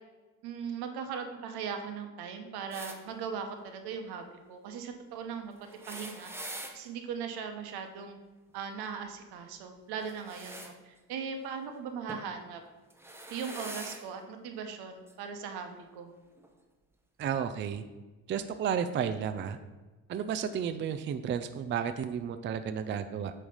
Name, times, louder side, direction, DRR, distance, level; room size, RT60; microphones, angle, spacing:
voice 1, 0.4-5.5 5.9-8.2 8.5-12.6 13.3-16.1, right 6 dB, 80° right, 5 dB, 1.1 m, -39 dB
sound 1, 2.7-3.0 5.6-6.8 10.0-10.7 12.1-12.3 12.9-14.0 15.1-15.2 16.4-16.5, right 1 dB, 5° right, 0.8 m, -43 dB
voice 2, 17.2-17.8 18.3-19.6 20.1-23.3, right 8 dB, 30° right, 9 dB, 0.4 m, -32 dB
8.4 x 3.3 x 5.5 m, 1.2 s
cardioid pair, 110°, 38 cm